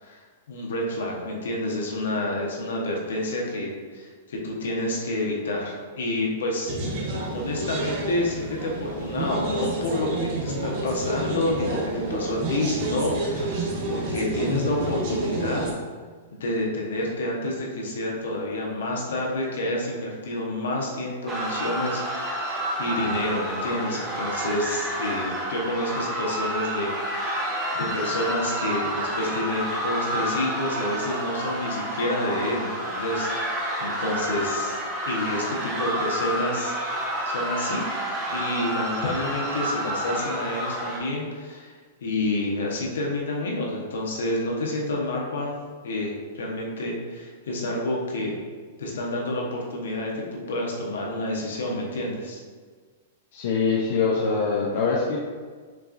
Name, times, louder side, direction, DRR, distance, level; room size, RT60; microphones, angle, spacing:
voice 1, 0.0-6.7 7.3-15.8 16.3-34.8 35.1-37.8 38.3-45.6 45.8-48.4 48.8-52.4, left 1 dB, 85° left, -2 dB, 1.0 m, -29 dB
sound 1, 6.7-15.7, right 2 dB, 50° right, 0.9 m, -29 dB
sound 2, 21.3-41.0, equal, 15° right, 0.9 m, -29 dB
voice 2, 53.3-55.2, left 4 dB, 70° left, -4 dB, 0.6 m, -23 dB
5.9 x 2.4 x 2.5 m, 1.5 s
hypercardioid pair, 140°, 0 cm